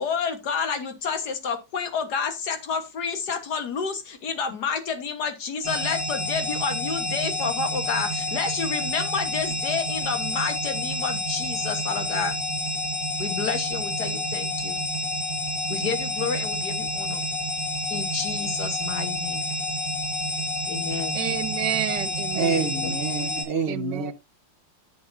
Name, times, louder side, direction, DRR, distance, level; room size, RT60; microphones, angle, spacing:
voice 1, 0.0-12.4 13.2-14.8 15.7-17.2 17.9-19.4 20.7-21.2 22.7-22.9, left 5 dB, 60° left, 1.9 m, -29 dB
sound 1, 5.6-23.4, left 1 dB, 15° left, 6.4 m, -29 dB
voice 2, 21.1-22.7 23.7-24.1, right 13 dB, 70° right, 1.3 m, -30 dB
voice 3, 22.3-24.1, right 4 dB, 45° right, 0.8 m, -27 dB
9.7 x 8.3 x 2.7 m
omnidirectional pair, 2.0 m